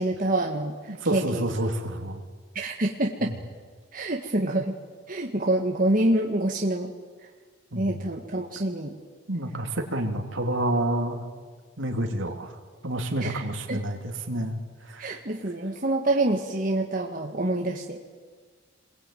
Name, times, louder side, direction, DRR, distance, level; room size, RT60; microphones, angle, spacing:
voice 1, 0.0-1.5 2.6-3.3 3.9-4.8 5.1-6.9 7.8-8.9 13.2-13.8 15.0-18.0, right 1 dB, 40° right, 1 dB, 1.7 m, -26 dB
voice 2, 0.9-2.2 3.2-3.3 7.7-8.1 9.3-11.2 11.8-12.6 12.8-14.6 14.8-15.1, right 1 dB, 70° right, 3 dB, 3.1 m, -29 dB
28.5 x 22.0 x 9.2 m, 1.5 s
head